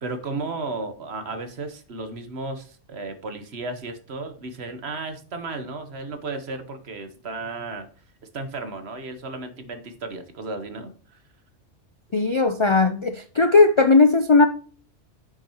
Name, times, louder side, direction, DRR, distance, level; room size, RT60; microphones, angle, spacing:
voice 1, 0.0-7.9 8.3-10.9, right 3 dB, 60° right, 1.3 m, -34 dB
voice 2, 12.1-14.5, left 3 dB, 50° left, 0.3 m, -17 dB
9.9 x 6.3 x 2.9 m
omnidirectional pair, 1.2 m